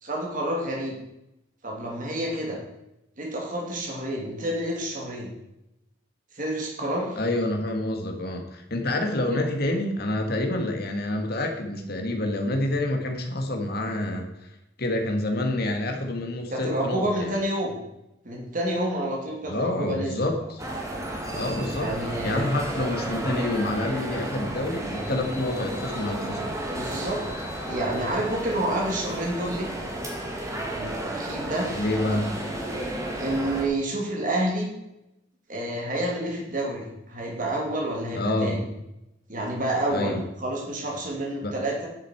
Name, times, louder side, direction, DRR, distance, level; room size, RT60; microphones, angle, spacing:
voice 1, 0.0-0.9 1.6-2.6 3.2-5.3 6.3-7.2 9.3-9.5 16.5-17.8 18.2-20.1 21.8-22.5 26.7-27.2 27.7-29.7 30.7-31.7 33.2-34.7 35.5-38.7 39.3-41.9, right 1 dB, 45° right, -1 dB, 2.9 m, -29 dB
voice 2, 7.2-17.3 19.5-20.6 21.3-26.6 31.7-32.3 38.1-38.6 39.9-40.2 41.4-41.6, left 1 dB, 55° left, 3 dB, 1.8 m, -28 dB
sound 1, 20.6-33.7, right 1 dB, 15° right, 1.9 m, -32 dB
10.5 x 7.9 x 4.6 m, 0.87 s
head